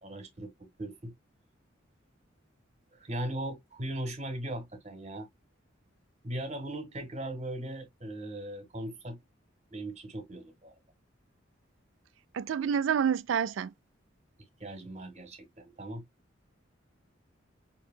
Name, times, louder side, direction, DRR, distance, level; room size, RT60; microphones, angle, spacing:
voice 1, 0.0-1.1 2.9-5.3 6.2-9.2 9.7-10.8 14.6-16.0, right 1 dB, 35° right, 1.7 m, -38 dB
voice 2, 12.3-13.7, right 7 dB, 75° right, 0.4 m, -28 dB
6.2 x 3.0 x 2.2 m
head